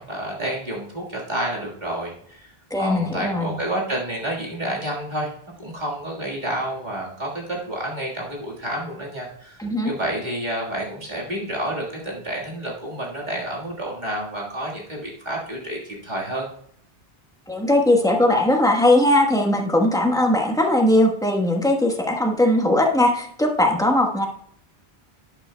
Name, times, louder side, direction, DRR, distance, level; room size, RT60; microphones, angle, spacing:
voice 1, 0.0-2.5 2.8-5.3 5.6-9.6 9.8-16.5, right 1 dB, 45° right, -3 dB, 1.8 m, -29 dB
voice 2, 2.7-3.5 9.6-9.9 17.5-24.3, left 1 dB, 5° left, 2 dB, 1.1 m, -19 dB
11.5 x 8.9 x 2.2 m, 0.68 s
omnidirectional pair, 1.1 m